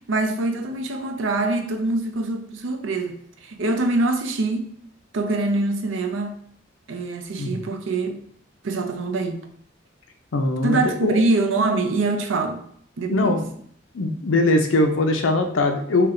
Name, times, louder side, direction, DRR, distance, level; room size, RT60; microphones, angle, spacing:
voice 1, 0.0-4.6 5.1-6.4 6.9-8.2 8.6-9.4 10.6-12.6 13.0-13.4, right 2 dB, 80° right, 0.5 m, -24 dB
voice 2, 10.3-11.2 13.1-13.5 13.9-16.1, left 2 dB, 85° left, 0.6 m, -21 dB
3.3 x 2.8 x 3.7 m
head